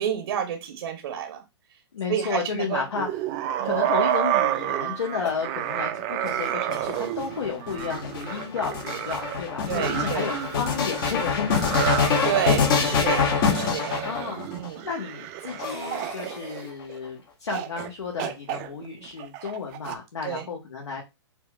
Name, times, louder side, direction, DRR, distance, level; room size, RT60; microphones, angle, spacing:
voice 1, 0.0-1.4 2.1-2.8 3.6-3.8 9.7-10.3 12.2-14.1 14.5-14.9 20.2-20.5, right 9 dB, 60° right, 5 dB, 0.7 m, -30 dB
voice 2, 1.9-3.1 3.6-11.9 14.0-14.4 14.8-21.0, left 5 dB, 80° left, 0 dB, 0.8 m, -32 dB
sound 1, 2.9-17.0 17.5-17.9 18.2-20.0, right 12 dB, 30° right, 0.3 m, -30 dB
sound 2, 5.0-5.9 6.2-7.0 7.8-7.9 8.2-8.3 9.2-9.3 11.7-12.7 15.6-16.7, left 3 dB, 25° left, 1.3 m, -39 dB
sound 3, 6.7-14.7 15.5-16.3, left 6 dB, 50° left, 0.8 m, -25 dB
4.3 x 2.2 x 2.2 m, 0.23 s
hypercardioid pair, 120°, 15 cm